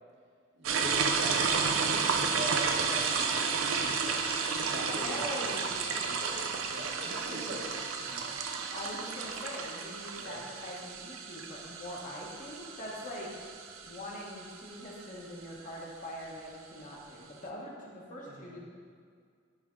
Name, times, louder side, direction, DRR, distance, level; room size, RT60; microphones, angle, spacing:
voice 1, 0.5-7.6 8.0-8.3 10.2-10.4 18.3-18.6, right 1 dB, 60° right, -1 dB, 1.1 m, -43 dB
sound 1, 0.6-15.0, right 5 dB, 85° right, 0.5 m, -32 dB
voice 2, 5.0-5.6 7.0-7.4 8.7-13.3 13.8-18.6, left 1 dB, 40° left, -3 dB, 1.1 m, -42 dB
10.0 x 3.5 x 3.7 m, 2.1 s
head